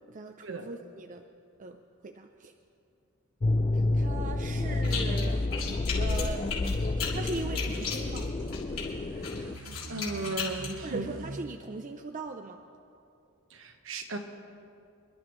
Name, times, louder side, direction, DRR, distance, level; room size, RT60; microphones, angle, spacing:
voice 1, 0.1-1.2 1.6-2.5 3.7-5.4 6.0-6.5 7.1-8.3 10.8-12.6, right 3 dB, 35° right, 5 dB, 0.5 m, -40 dB
sound 1, 3.4-9.6, left 2 dB, 30° left, 0.4 m, -29 dB
sound 2, 4.6-11.4, right 2 dB, 90° right, 0.9 m, -43 dB
sound 3, 4.8-5.3 5.5-8.8 9.2-10.7, left 6 dB, 75° left, 3.4 m, -35 dB
voice 2, 9.9-11.1 13.5-14.2, right 2 dB, 65° right, 5 dB, 1.2 m, -35 dB
28.0 x 12.0 x 3.2 m, 2.5 s
head